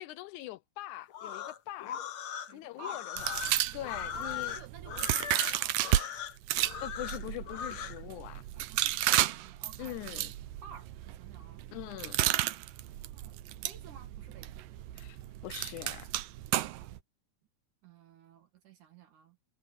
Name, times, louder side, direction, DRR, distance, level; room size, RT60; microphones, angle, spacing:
voice 1, 0.0-2.0 2.5-3.4 3.7-4.5 6.8-8.4 9.8-10.3 11.7-12.2 15.0-15.2 15.4-16.1, left 15 dB, 80° left, 1.8 m, -42 dB
sound 1, 1.1-8.0, left 9 dB, 60° left, 1.5 m, -39 dB
voice 2, 2.5-3.0 3.7-6.2 6.6-6.8 8.5-10.2 10.6-11.6 13.0-13.4 13.6-14.5 17.8-19.4, right 7 dB, 70° right, 3.2 m, -53 dB
sound 2, 3.2-6.1 6.4-17.0, right 14 dB, 85° right, 2.5 m, -33 dB
omnidirectional pair, 3.8 m